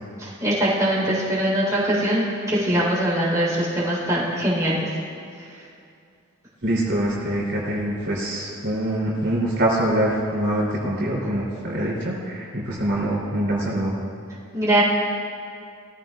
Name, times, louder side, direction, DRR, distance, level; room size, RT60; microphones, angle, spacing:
voice 1, 0.2-4.9 5.5-5.6 14.5-14.8, right 1 dB, 15° right, -8 dB, 3.9 m, -22 dB
voice 2, 6.6-13.9, right 1 dB, 60° right, -6 dB, 3.3 m, -24 dB
20.5 x 15.0 x 2.4 m, 2.3 s
head